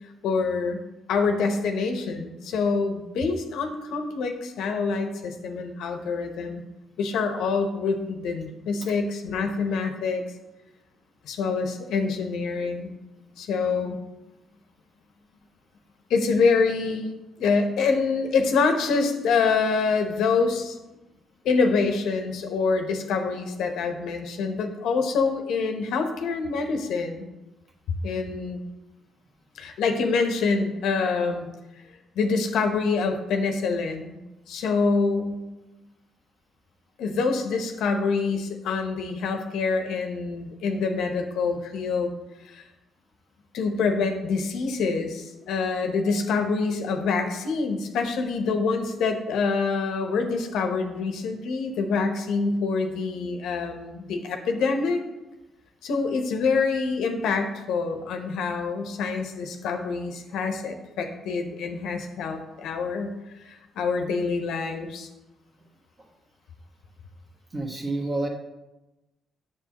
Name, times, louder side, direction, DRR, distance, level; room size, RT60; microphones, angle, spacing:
voice 1, 0.2-0.8 1.1-6.6 7.0-10.2 11.2-12.9 13.4-14.0 16.1-20.8 21.4-27.3 28.0-28.6 29.6-31.5 32.2-34.2 34.5-35.4 37.0-42.1 42.4-42.6 43.5-55.0 55.8-63.1 63.4-65.1, left 4 dB, 85° left, 5 dB, 0.8 m, -26 dB
voice 2, 67.5-68.3, right 2 dB, 30° right, 1 dB, 1.3 m, -28 dB
7.2 x 6.5 x 2.9 m, 1.0 s
cardioid pair, 90°, 0 cm